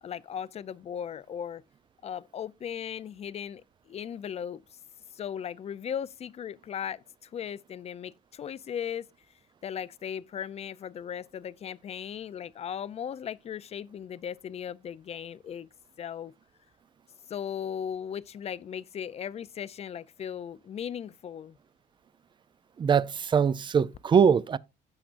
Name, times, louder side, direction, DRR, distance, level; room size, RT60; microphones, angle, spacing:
voice 1, 0.0-1.6 2.0-4.8 5.1-9.1 9.6-15.7 16.0-16.3 17.3-21.6, left 8 dB, 40° left, 0.5 m, -37 dB
voice 2, 22.8-24.6, right 7 dB, 30° right, 0.5 m, -22 dB
16.0 x 5.9 x 2.5 m
cardioid pair, 110°, 17 cm